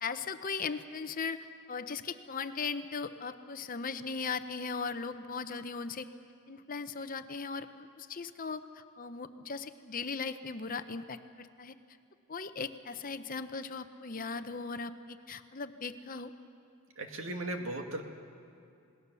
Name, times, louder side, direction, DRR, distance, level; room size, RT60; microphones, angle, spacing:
voice 1, 0.0-1.4 1.7-6.1 6.5-11.7 12.3-16.3, left 5 dB, 40° left, 10 dB, 0.7 m, -38 dB
voice 2, 17.0-18.0, right 2 dB, 60° right, 4 dB, 2.1 m, -37 dB
27.5 x 19.5 x 6.9 m, 2.5 s
head